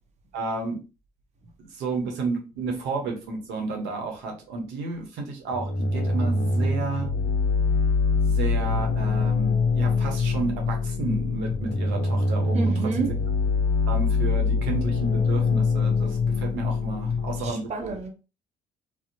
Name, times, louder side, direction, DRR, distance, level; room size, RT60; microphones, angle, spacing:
voice 1, 0.3-0.8 1.6-7.1 8.2-13.1 13.9-17.9, right 3 dB, 70° right, 0.8 m, -31 dB
sound 1, 5.5-17.5, left 4 dB, 45° left, 0.6 m, -24 dB
voice 2, 12.5-13.1 17.4-18.1, right 3 dB, 40° right, 0.7 m, -30 dB
2.6 x 2.0 x 2.6 m
hypercardioid pair, 55°, 19 cm